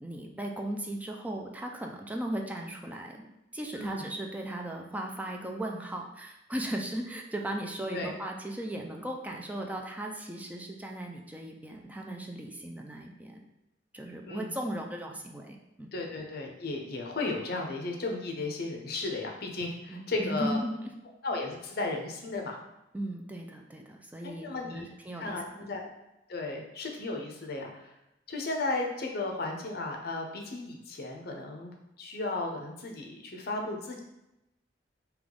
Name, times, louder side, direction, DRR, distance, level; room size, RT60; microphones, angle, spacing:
voice 1, 0.0-3.3 3.5-13.4 13.9-15.9 19.9-20.9 22.9-25.7, right 1 dB, 10° right, 1 dB, 0.4 m, -37 dB
voice 2, 3.7-4.1 7.9-8.1 14.2-14.5 15.9-20.6 21.2-22.6 24.2-24.9 25.2-25.9 26.3-27.9 28.3-34.0, left 2 dB, 55° left, 2 dB, 0.7 m, -35 dB
3.5 x 2.9 x 3.7 m, 0.91 s
head